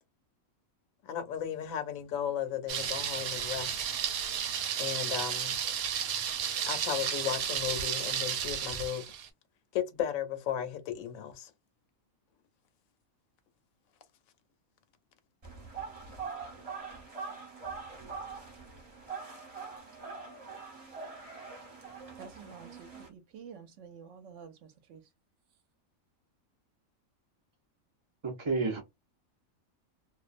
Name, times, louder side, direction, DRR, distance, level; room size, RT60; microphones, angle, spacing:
voice 1, 1.0-3.8 4.8-5.6 6.7-9.0 9.7-11.5, left 9 dB, 75° left, 1.0 m, -35 dB
Thunder, 2.7-9.3, right 8 dB, 85° right, 1.0 m, -33 dB
sound 1, 15.4-23.1, right 5 dB, 30° right, 0.9 m, -43 dB
voice 2, 22.2-25.0, right 6 dB, 65° right, 0.9 m, -49 dB
voice 3, 28.2-28.8, right 3 dB, 50° right, 0.3 m, -30 dB
2.5 x 2.1 x 2.4 m
omnidirectional pair, 1.5 m